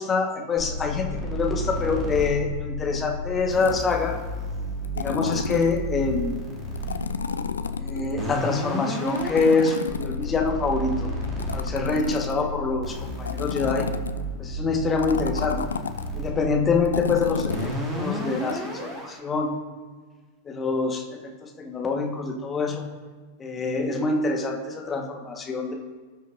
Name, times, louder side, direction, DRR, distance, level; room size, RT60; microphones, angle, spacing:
voice 1, 0.0-4.1 4.9-6.4 7.8-11.1 11.5-13.9 14.4-15.6 16.1-19.5 20.5-21.0 21.4-22.8 23.4-25.7, left 4 dB, 20° left, 1 dB, 1.5 m, -25 dB
sound 1, 0.6-19.1, left 1 dB, 20° right, 2.7 m, -32 dB
sound 2, 3.6-4.0 4.8-5.8 6.8-8.1 9.1-10.5 11.2-12.6 13.2-14.2 15.0-16.1 16.9-17.8 18.5-18.6, left 6 dB, 70° left, 0.4 m, -31 dB
18.0 x 6.4 x 2.7 m, 1.4 s
figure-of-eight pair, 90°, 0 cm